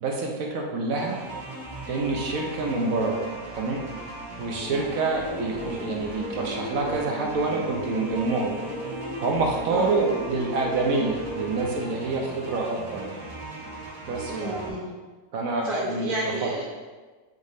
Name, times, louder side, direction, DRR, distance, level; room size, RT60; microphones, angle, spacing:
voice 1, 0.0-1.2 1.9-3.2 3.5-3.9 4.4-8.5 9.2-13.2 14.1-14.7 15.3-16.1, right 3 dB, 60° right, 0 dB, 1.1 m, -27 dB
sound 1, 1.0-14.7, right 2 dB, 85° right, 1.9 m, -39 dB
sound 2, 4.6-11.6, left 1 dB, 75° left, 2.0 m, -35 dB
voice 2, 14.3-14.9 15.6-16.7, right 2 dB, 35° right, -6 dB, 1.2 m, -30 dB
8.3 x 3.8 x 3.6 m, 1.3 s
omnidirectional pair, 1.9 m